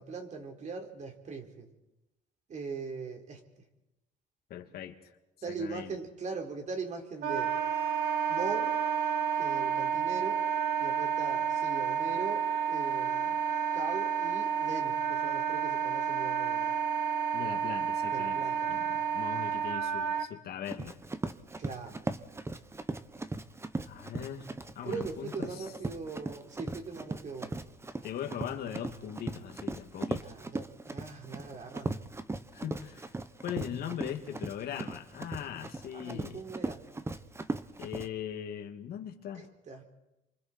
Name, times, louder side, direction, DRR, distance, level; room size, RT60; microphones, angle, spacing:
voice 1, 0.0-1.7 2.5-3.4 5.4-7.5 8.3-8.7 9.3-10.4 10.8-13.4 13.7-16.7 18.1-18.7 21.6-22.0 24.8-27.5 30.2-32.0 35.9-36.8 39.3-39.8, right 4 dB, 45° right, 3 dB, 4.2 m, -40 dB
voice 2, 4.5-5.0 5.5-5.9 17.3-18.4 18.7-21.0 23.9-25.7 28.0-30.3 32.5-33.1 33.4-36.4 37.8-39.5, left 9 dB, 65° left, 5 dB, 2.5 m, -40 dB
Wind instrument woodwind instrument, 7.2-20.3, right 7 dB, 75° right, 2.8 m, -30 dB
Run, 20.6-38.1, right 2 dB, 15° right, 1.1 m, -38 dB
28.0 x 25.0 x 4.5 m, 0.97 s
cardioid pair, 110°, 17 cm